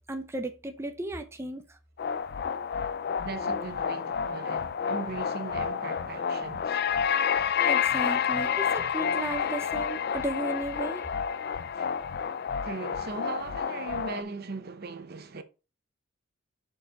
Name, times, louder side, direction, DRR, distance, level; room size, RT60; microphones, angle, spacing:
voice 1, 0.1-1.8 7.6-11.1, right 1 dB, 15° right, 0.7 m, -35 dB
sound 1, 2.0-14.2, left 7 dB, 50° left, 0.4 m, -29 dB
voice 2, 3.2-6.9 11.7-12.2 12.6-15.4, right 4 dB, 50° right, 0.8 m, -39 dB
6.8 x 4.7 x 4.6 m
head